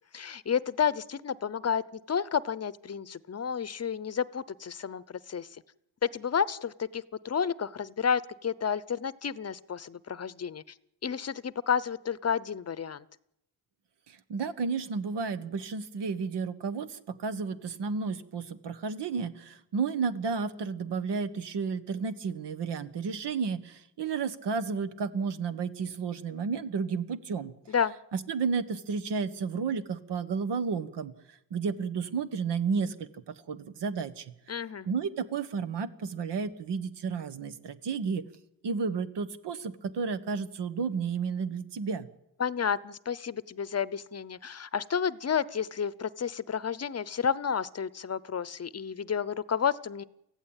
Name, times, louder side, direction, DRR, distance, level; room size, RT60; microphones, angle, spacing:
voice 1, 0.1-5.6 6.0-10.6 11.0-13.0 27.7-28.0 34.5-34.9 42.4-50.0, left 7 dB, 40° left, 18 dB, 0.7 m, -31 dB
voice 2, 14.1-27.5 28.1-31.1 31.5-32.9 33.3-34.3 34.9-38.2 38.6-42.1, right 5 dB, 80° right, 12 dB, 1.4 m, -32 dB
24.0 x 15.5 x 8.9 m, 0.85 s
cardioid pair, 90°, 41 cm